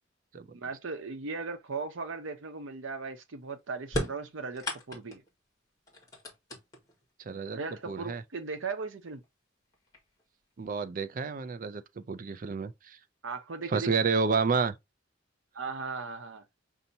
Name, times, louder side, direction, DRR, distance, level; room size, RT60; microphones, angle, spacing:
voice 1, 0.5-5.2 7.5-9.2 13.2-13.9 15.5-16.4, right 4 dB, 85° right, 0.8 m, -37 dB
sound 1, 3.8-5.3 5.9-7.0 8.1-8.2 9.2-9.3 9.7-10.2, equal, 20° left, 1.4 m, -36 dB
voice 2, 7.3-7.6 7.9-8.2 10.6-11.8 12.1-13.0 13.7-14.7, right 4 dB, 45° right, 0.4 m, -29 dB
5.5 x 2.7 x 2.7 m
head